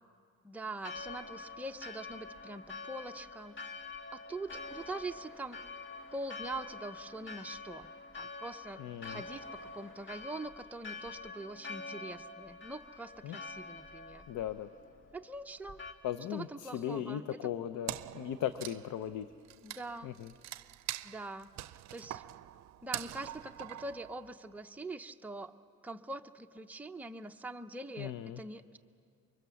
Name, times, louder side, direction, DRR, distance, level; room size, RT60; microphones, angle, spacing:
voice 1, 0.4-3.6 4.1-5.6 6.1-7.9 8.1-14.2 15.1-15.8 16.3-17.3 19.6-20.1 21.0-21.5 21.9-22.2 22.8-25.5 25.8-28.8, right 2 dB, 5° right, 5 dB, 0.7 m, -43 dB
Church bell, 0.8-15.9, left 3 dB, 40° left, 1.6 m, -46 dB
voice 2, 8.8-9.2 13.2-13.4 14.3-14.7 16.0-19.3 20.0-20.3 28.0-28.4, left 10 dB, 85° left, 12 dB, 0.7 m, -37 dB
Wood, 17.9-24.6, right 13 dB, 65° right, 0.5 m, -44 dB
24.0 x 22.5 x 7.0 m, 2.3 s
cardioid pair, 90°, 30 cm